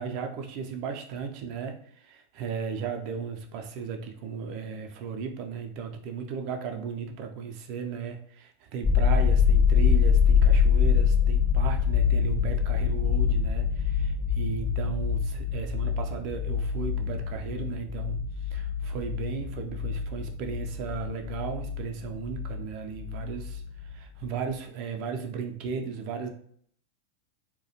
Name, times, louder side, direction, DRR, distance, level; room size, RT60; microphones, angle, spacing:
voice 1, 0.0-26.3, right 6 dB, 45° right, 4 dB, 0.4 m, -36 dB
sound 1, 8.8-22.6 23.0-23.9, left 7 dB, 25° left, 0.4 m, -25 dB
2.3 x 2.1 x 2.7 m, 0.62 s
figure-of-eight pair, 90°, 0 cm